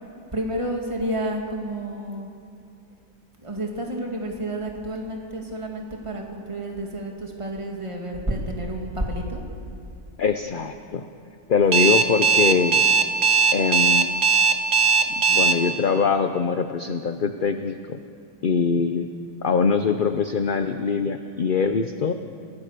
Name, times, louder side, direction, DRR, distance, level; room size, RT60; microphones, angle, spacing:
voice 1, 0.3-2.3 3.4-9.4, right 1 dB, 20° right, 0 dB, 2.6 m, -30 dB
voice 2, 10.2-11.1 11.5-12.8 13.5-14.1 15.2-18.0 18.4-19.1 19.4-22.1, left 5 dB, 45° left, 8 dB, 0.7 m, -23 dB
Alarm, 11.7-15.5, right 5 dB, 55° right, 1.8 m, -18 dB
28.5 x 18.5 x 6.8 m, 2.5 s
omnidirectional pair, 1.6 m